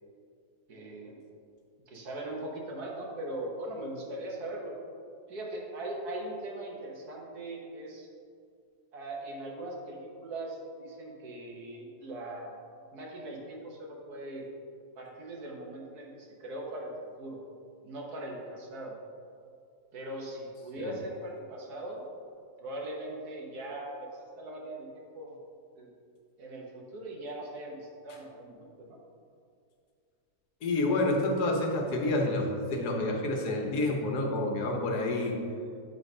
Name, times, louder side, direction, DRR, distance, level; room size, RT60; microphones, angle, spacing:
voice 1, 0.7-1.2 1.9-4.7 5.3-8.1 8.9-12.6 12.9-14.4 15.0-16.9 17.2-17.4 17.8-19.0 19.9-22.0 22.6-25.3 25.8-25.9 26.4-29.0, right 1 dB, 90° right, -1 dB, 1.8 m, -40 dB
voice 2, 30.6-35.4, left 2 dB, 90° left, 1 dB, 1.5 m, -28 dB
8.1 x 4.0 x 5.3 m, 2.3 s
omnidirectional pair, 1.6 m